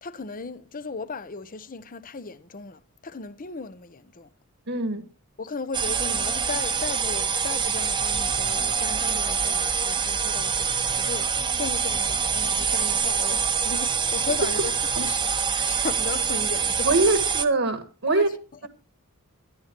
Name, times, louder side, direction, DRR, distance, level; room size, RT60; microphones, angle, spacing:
voice 1, 0.0-4.3 5.4-17.1 18.1-18.2, left 4 dB, 40° left, 0.8 m, -36 dB
voice 2, 4.7-5.1 16.8-18.3, right 3 dB, 60° right, 1.4 m, -23 dB
sound 1, 5.7-17.4, right 6 dB, 20° right, 0.9 m, -25 dB
13.0 x 12.0 x 4.5 m
head